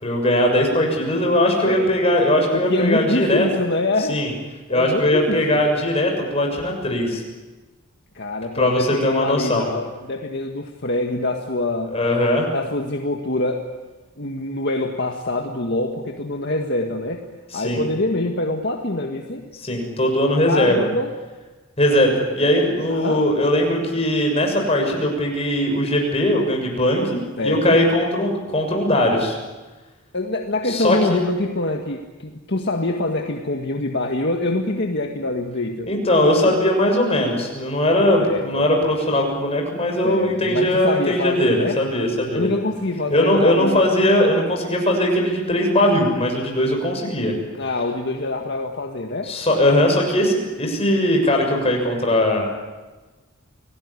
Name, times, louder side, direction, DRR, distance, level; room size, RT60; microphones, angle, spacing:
voice 1, 0.0-3.4 4.1-4.3 4.7-7.2 8.5-9.7 11.9-12.5 17.5-17.8 19.5-20.9 21.8-29.3 30.6-31.3 35.9-42.5 43.1-47.3 49.2-52.5, left 1 dB, 30° left, 1 dB, 6.7 m, -20 dB
voice 2, 2.5-4.2 4.7-5.6 8.2-12.0 12.5-13.7 14.2-17.2 17.5-19.5 20.5-21.1 22.9-23.2 27.4-27.8 30.1-35.9 38.2-38.7 40.0-41.8 42.3-43.9 47.6-49.3, left 2 dB, 55° left, 3 dB, 1.8 m, -25 dB
28.5 x 19.5 x 9.8 m, 1.2 s
head